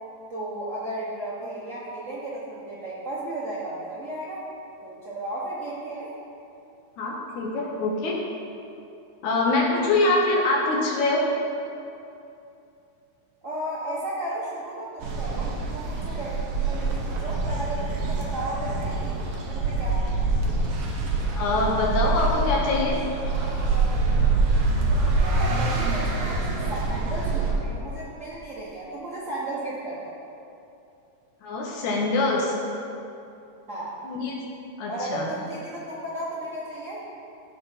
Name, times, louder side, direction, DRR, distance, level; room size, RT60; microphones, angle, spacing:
voice 1, 0.3-4.4 4.8-6.1 13.4-20.3 25.2-30.1 33.7-33.9 34.9-37.0, right 1 dB, 90° right, -8 dB, 0.6 m, -34 dB
voice 2, 7.0-8.2 9.2-11.2 21.4-23.0 31.4-32.5 34.0-34.4 34.8-35.3, left 2 dB, 85° left, -3 dB, 2.5 m, -24 dB
sound 1, 15.0-27.5, right 3 dB, 60° right, 1.8 m, -25 dB
12.5 x 4.3 x 5.6 m, 2.7 s
omnidirectional pair, 3.3 m